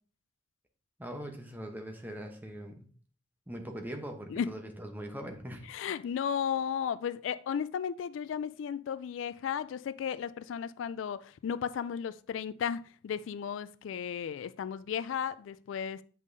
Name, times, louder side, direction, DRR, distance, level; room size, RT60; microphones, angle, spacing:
voice 1, 1.0-2.9 3.5-5.7, equal, 10° right, 0.8 m, -41 dB
voice 2, 5.7-16.0, left 7 dB, 75° left, 0.3 m, -34 dB
8.1 x 5.4 x 2.6 m
head